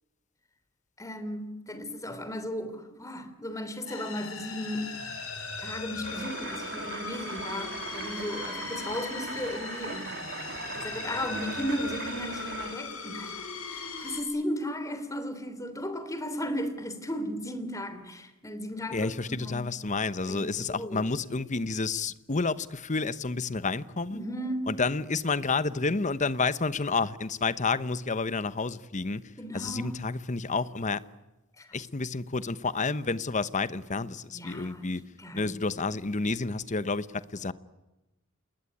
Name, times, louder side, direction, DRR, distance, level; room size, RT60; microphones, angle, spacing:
voice 1, 1.0-4.9 5.6-10.2 10.8-19.7 20.2-21.1 24.1-24.8 29.4-30.0 31.6-31.8 34.3-34.9 35.2-35.5, equal, 15° left, 10 dB, 3.3 m, -35 dB
sound 1, 3.9-14.2, left 4 dB, 85° left, 6.9 m, -39 dB
sound 2, 6.0-12.8, right 5 dB, 60° right, 2.8 m, -40 dB
voice 2, 18.9-24.2 24.7-29.2 29.5-31.0 31.7-35.0 35.3-37.5, left 4 dB, 35° left, 15 dB, 1.0 m, -30 dB
28.5 x 21.0 x 9.9 m, 1.0 s
head